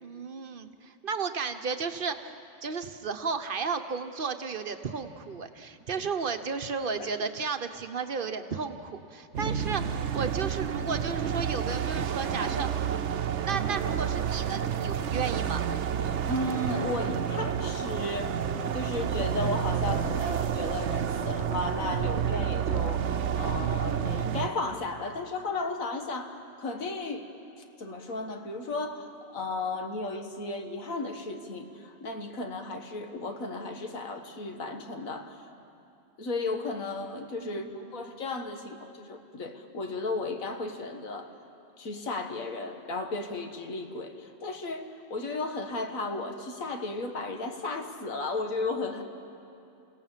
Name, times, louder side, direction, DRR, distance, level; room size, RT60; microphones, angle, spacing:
voice 1, 0.0-12.7 13.4-15.7 37.4-38.0, right 5 dB, 45° right, 8 dB, 1.0 m, -34 dB
sound 1, 9.3-24.5, right 8 dB, 65° right, 1.0 m, -30 dB
voice 2, 16.2-18.5 18.7-23.0 23.3-26.3 26.6-27.3 27.8-35.4 36.2-41.3 41.8-49.0, left 2 dB, 80° left, 5 dB, 1.9 m, -34 dB
28.5 x 17.0 x 7.4 m, 2.7 s
omnidirectional pair, 1.4 m